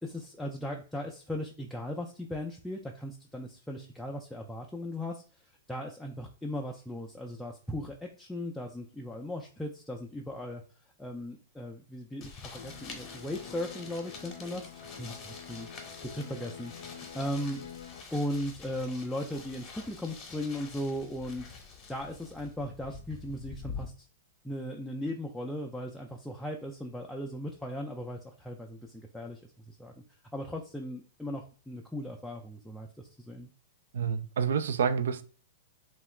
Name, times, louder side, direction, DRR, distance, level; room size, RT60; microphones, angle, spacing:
voice 1, 0.0-10.6 11.0-17.6 18.1-24.1 24.4-29.9 30.3-33.5, left 1 dB, 5° left, 0.3 m, -38 dB
sound 1, 12.2-23.9, left 5 dB, 30° left, 0.8 m, -46 dB
sound 2, 12.6-18.0, left 7 dB, 75° left, 0.4 m, -47 dB
voice 2, 33.9-35.2, right 7 dB, 75° right, 0.3 m, -28 dB
2.8 x 2.3 x 3.1 m
hypercardioid pair, 120°, 0 cm